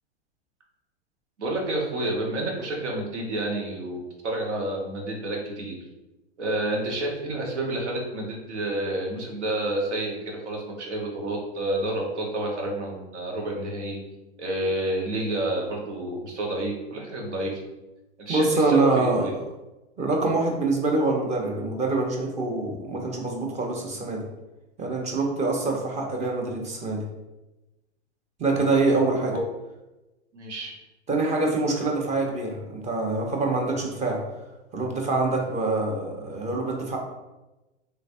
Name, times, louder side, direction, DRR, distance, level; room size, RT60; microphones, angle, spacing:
voice 1, 1.4-5.8 6.4-14.0 14.4-17.5 18.2-19.3 29.3-29.4 30.3-30.7, right 1 dB, 85° right, 0 dB, 1.1 m, -29 dB
voice 2, 18.3-19.3 20.0-24.2 24.8-27.0 28.4-29.3 31.1-34.2 34.7-37.0, right 3 dB, 20° right, 1 dB, 0.7 m, -25 dB
3.2 x 3.1 x 2.6 m, 1.0 s
hypercardioid pair, 110°, 34 cm